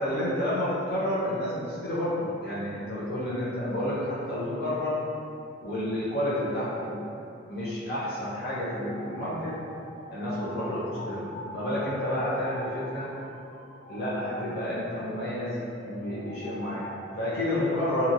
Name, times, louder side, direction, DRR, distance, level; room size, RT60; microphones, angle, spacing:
voice 1, 0.0-5.0 5.6-7.0 7.5-9.6 10.1-13.1 13.9-18.1, left 1 dB, 50° left, -10 dB, 0.6 m, -30 dB
sound 1, 8.7-17.4, equal, 90° left, 0.7 m, -44 dB
2.8 x 2.4 x 2.7 m, 2.6 s
head